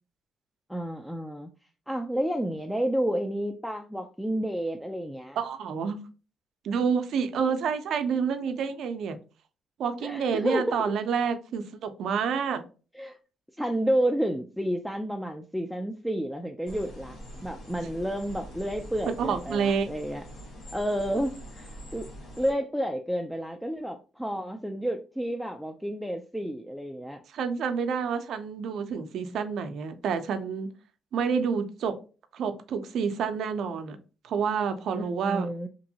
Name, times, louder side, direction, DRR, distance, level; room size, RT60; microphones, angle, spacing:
voice 1, 0.7-1.5 1.9-5.4 10.0-10.8 13.0-13.2 13.6-20.2 20.7-22.1 22.4-27.2 34.9-35.7, equal, ahead, 0.3 m, -30 dB
voice 2, 5.4-6.0 6.6-9.2 9.8-12.6 19.1-19.9 27.3-30.7 31.1-32.0 32.3-34.0 34.2-35.5, right 6 dB, 75° right, 0.5 m, -28 dB
sound 1, 16.6-22.5, equal, 85° left, 1.1 m, -44 dB
2.9 x 2.6 x 2.7 m
cardioid pair, 90°, 0 cm